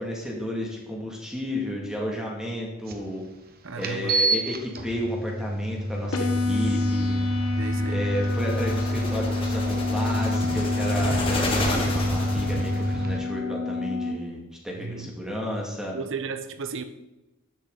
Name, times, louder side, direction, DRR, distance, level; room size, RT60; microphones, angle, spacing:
voice 1, 0.0-3.2 3.8-7.2 7.9-16.0, equal, 5° right, 2.3 m, -32 dB
sound 1, 2.9-3.0 3.8-13.2, right 1 dB, 45° right, 1.3 m, -28 dB
voice 2, 3.6-4.2 7.6-8.1 14.8-15.1 15.9-16.8, right 5 dB, 60° right, 0.9 m, -34 dB
sound 2, 6.1-14.1, left 3 dB, 85° left, 1.4 m, -29 dB
sound 3, 8.3-12.9, left 2 dB, 25° left, 2.4 m, -32 dB
13.0 x 11.0 x 4.0 m
head